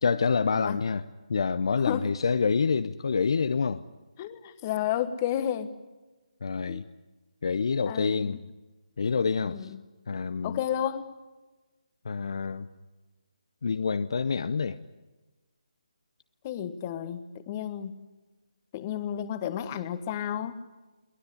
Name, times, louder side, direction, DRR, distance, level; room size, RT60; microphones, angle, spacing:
voice 1, 0.0-3.8 6.4-6.8 7.4-8.5 9.0-9.7 10.1-10.6 12.0-12.7 13.6-14.8, left 5 dB, 55° left, 13 dB, 0.7 m, -27 dB
voice 2, 4.2-5.7 6.7-6.8 7.9-8.4 9.4-9.8 10.4-11.1 16.4-18.1 18.7-20.6, left 10 dB, 25° left, 12 dB, 1.2 m, -32 dB
22.5 x 18.5 x 9.9 m, 1.2 s
figure-of-eight pair, 150°, 3 cm